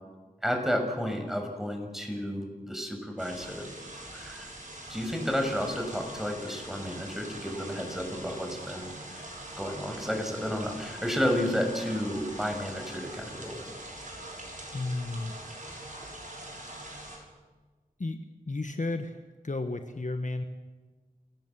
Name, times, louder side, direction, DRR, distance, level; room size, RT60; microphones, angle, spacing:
voice 1, 0.4-3.7 4.1-4.5 4.9-9.3 9.6-13.7, equal, ahead, 4 dB, 6.4 m, -32 dB
sound 1, 3.2-17.2, right 1 dB, 60° right, 6.6 m, -43 dB
voice 2, 14.7-15.3 18.0-18.2 18.5-20.4, left 2 dB, 55° left, 7 dB, 1.5 m, -33 dB
29.5 x 15.0 x 7.7 m, 1.3 s
wide cardioid pair, 40°, 15 cm